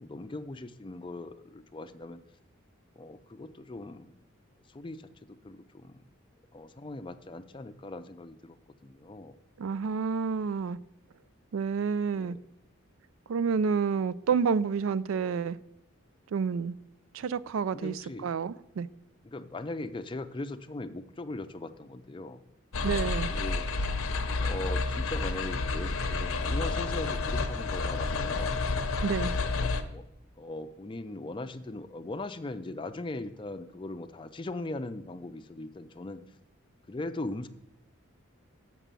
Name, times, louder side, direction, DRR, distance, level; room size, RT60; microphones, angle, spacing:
voice 1, 0.0-2.2 3.0-4.1 4.7-6.0 6.5-8.6 8.8-9.4 12.1-12.4 17.7-18.3 19.2-22.4 23.3-23.6 24.4-28.6 29.3-30.1 30.4-36.2 36.9-37.5, left 2 dB, 25° left, 0.4 m, -40 dB
voice 2, 9.6-10.8 11.5-12.4 13.3-15.6 16.3-16.8 17.1-17.9 18.2-18.9 22.8-23.3 29.0-29.4, right 6 dB, 75° right, 0.4 m, -29 dB
sound 1, 22.7-29.8, left 3 dB, 85° left, 0.8 m, -30 dB
6.8 x 6.0 x 7.4 m
head